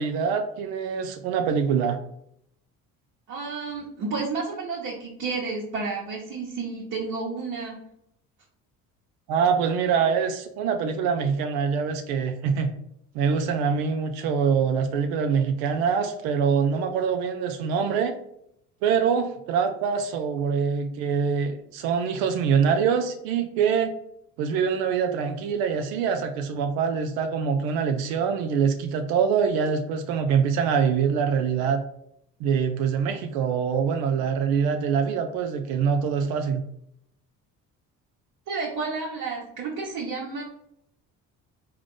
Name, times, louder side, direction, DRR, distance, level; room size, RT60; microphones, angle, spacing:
voice 1, 0.0-2.0 9.3-12.7 13.1-18.1 18.8-23.9 24.4-31.8 32.4-36.6, right 6 dB, 85° right, 7 dB, 0.5 m, -24 dB
voice 2, 3.3-7.8 38.5-40.4, right 4 dB, 60° right, -4 dB, 1.0 m, -31 dB
3.6 x 2.4 x 3.7 m, 0.74 s
supercardioid pair, 85°, 35 cm